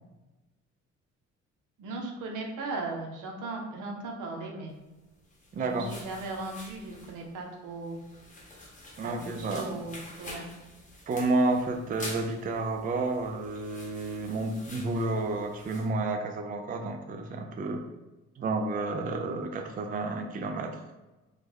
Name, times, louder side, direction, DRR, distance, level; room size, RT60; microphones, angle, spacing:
voice 1, 1.8-4.7 5.6-8.0 9.0-10.5, right 2 dB, 85° right, 1 dB, 0.8 m, -37 dB
sound 1, 5.2-15.9, left 1 dB, 25° left, 0.9 m, -47 dB
voice 2, 5.5-5.9 9.0-9.8 11.1-17.8 18.4-20.8, right 2 dB, 30° right, 5 dB, 0.4 m, -30 dB
3.2 x 2.2 x 3.4 m, 1.1 s
cardioid pair, 90°, 30 cm